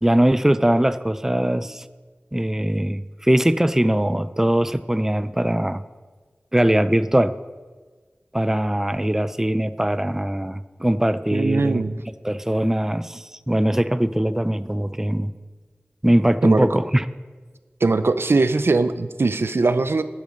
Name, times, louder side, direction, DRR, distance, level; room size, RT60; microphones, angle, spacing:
voice 1, 0.0-1.8 2.3-5.8 6.5-7.3 8.3-11.8 12.2-15.3 16.0-17.1, right 1 dB, 10° right, 14 dB, 0.4 m, -21 dB
voice 2, 11.3-12.0 16.4-16.8 17.8-20.0, right 3 dB, 80° right, 12 dB, 0.5 m, -20 dB
12.0 x 8.1 x 5.2 m, 1.4 s
wide cardioid pair, 50°, 4 cm